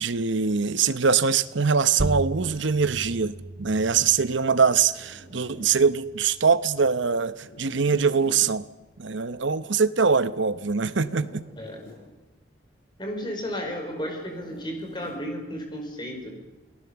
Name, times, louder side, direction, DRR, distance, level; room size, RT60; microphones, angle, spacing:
voice 1, 0.0-8.6 9.0-11.4, right 5 dB, 75° right, 14 dB, 0.9 m, -23 dB
Zipper (clothing), 1.8-2.6 4.6-5.8 7.4-8.5 10.8-12.0 14.1-15.2, left 1 dB, 55° left, 7.7 m, -47 dB
sound 1, 2.0-7.1, right 2 dB, 40° right, 0.8 m, -36 dB
voice 2, 13.0-16.3, equal, 25° left, 2 dB, 5.0 m, -33 dB
29.0 x 18.5 x 7.0 m, 1.1 s
head